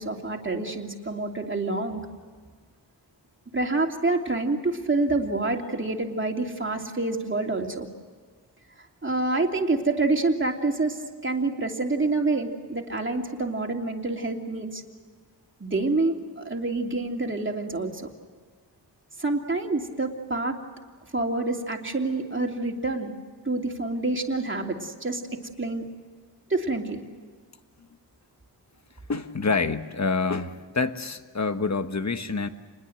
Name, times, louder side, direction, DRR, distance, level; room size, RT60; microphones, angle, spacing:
voice 1, 0.0-2.0 3.5-7.9 9.0-14.8 15.6-18.1 19.2-20.6 21.1-23.1 23.4-25.2 25.6-25.8 26.5-27.0, right 2 dB, 25° right, 2 dB, 2.9 m, -27 dB
voice 2, 29.1-32.5, left 4 dB, 40° left, 9 dB, 1.4 m, -27 dB
28.0 x 21.0 x 7.9 m, 1.5 s
wide cardioid pair, 105°, 43 cm